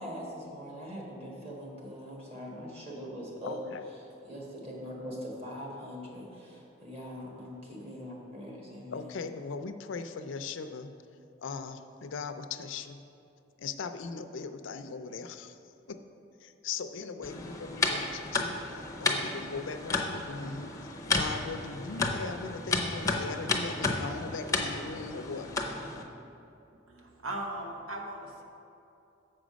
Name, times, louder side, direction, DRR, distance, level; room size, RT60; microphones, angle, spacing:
voice 1, 0.0-3.6 4.2-9.0, equal, 30° right, -3 dB, 1.6 m, -42 dB
voice 2, 3.4-3.9 8.9-10.9 11.4-13.0 13.6-15.6 15.9-16.0 16.4-18.6 19.0-20.7 21.0-25.5, left 4 dB, 70° left, 9 dB, 0.4 m, -39 dB
sound 1, 17.2-26.0, left 3 dB, 15° left, 0.6 m, -32 dB
voice 3, 26.9-28.4, right 1 dB, 85° right, 2 dB, 1.0 m, -38 dB
7.6 x 5.0 x 6.2 m, 2.7 s
head